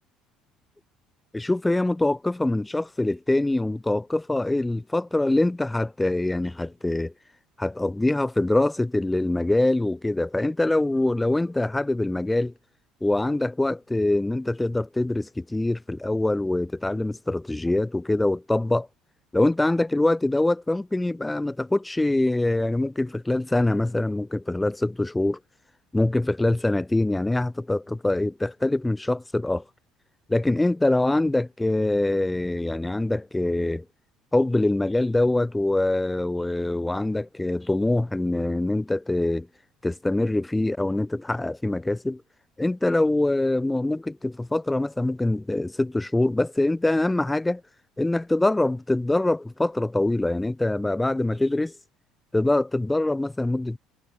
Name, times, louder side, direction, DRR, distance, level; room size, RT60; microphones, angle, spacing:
voice 1, 1.3-7.1 7.6-12.5 13.0-18.9 19.3-25.4 25.9-29.6 30.3-33.8 34.3-39.5 39.8-42.2 42.6-47.6 48.0-51.7 52.3-53.8, left 2 dB, 10° left, 5.1 m, -24 dB
figure-of-eight pair, 55°, 0 cm